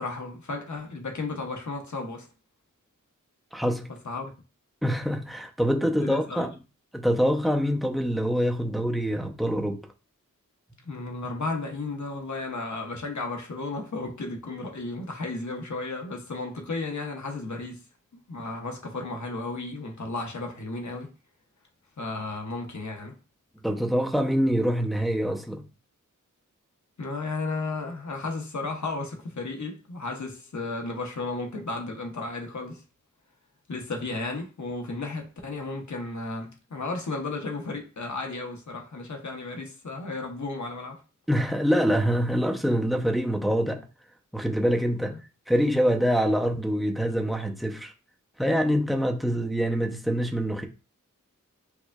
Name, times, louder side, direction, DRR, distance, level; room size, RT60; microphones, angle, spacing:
voice 1, 0.0-2.3 4.0-4.3 5.9-6.5 10.8-17.8 18.3-21.1 22.0-23.1 27.0-32.8 33.7-41.0 45.0-45.2, left 3 dB, 65° left, 1.0 m, -34 dB
voice 2, 3.5-3.9 4.8-6.5 6.9-9.8 23.6-25.6 41.3-43.8 44.3-45.2 45.5-47.9 48.4-50.7, equal, ahead, 0.6 m, -25 dB
4.6 x 2.5 x 2.3 m
cardioid pair, 50°, 32 cm